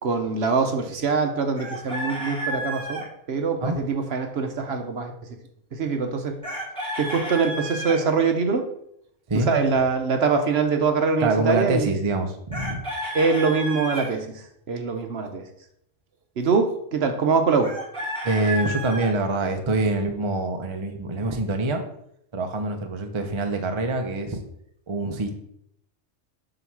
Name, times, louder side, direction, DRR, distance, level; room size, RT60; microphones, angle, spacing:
voice 1, 0.0-5.4 5.7-6.4 7.0-8.7 9.3-11.9 13.1-15.5 16.4-17.7, right 5 dB, 60° right, 5 dB, 1.0 m, -24 dB
Chicken rooster, 1.6-3.1 6.4-8.0 12.5-14.1 17.6-19.1, right 1 dB, 5° left, 1.9 m, -31 dB
voice 2, 11.2-12.8 18.2-21.8 22.3-24.4 24.9-25.4, right 2 dB, 30° right, 5 dB, 0.6 m, -25 dB
7.6 x 3.0 x 6.0 m, 0.75 s
omnidirectional pair, 1.3 m